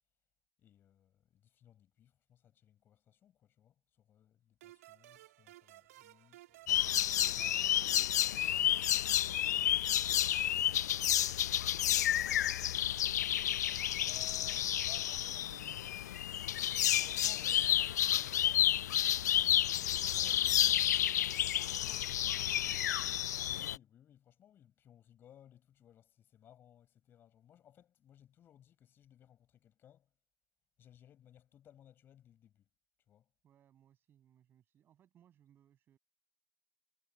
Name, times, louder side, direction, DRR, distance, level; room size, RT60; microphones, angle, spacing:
voice 1, 0.6-6.8 14.0-16.0 16.7-19.2 20.1-21.0 23.4-30.1 30.8-32.7 33.1-33.3, left 10 dB, 15° left, 7.7 m, -61 dB
sound 1, 4.6-9.0, right 16 dB, 40° right, 2.2 m, -58 dB
sound 2, 6.7-23.8, left 12 dB, 45° left, 0.4 m, -31 dB
voice 2, 8.3-10.7 11.7-12.7 15.1-15.9 19.4-20.0 22.1-23.3 33.4-36.0, right 10 dB, 15° right, 7.2 m, -66 dB
figure-of-eight pair, 130°, 12 cm